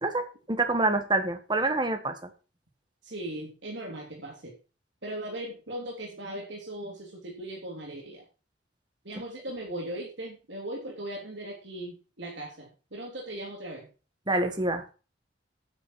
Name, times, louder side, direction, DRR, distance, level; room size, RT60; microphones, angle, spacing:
voice 1, 0.0-2.1 14.3-14.8, right 2 dB, 25° right, 7 dB, 1.5 m, -26 dB
voice 2, 3.0-4.5 5.0-8.2 9.0-13.9, right 1 dB, 75° right, -1 dB, 3.2 m, -38 dB
10.5 x 9.5 x 4.7 m, 0.34 s
head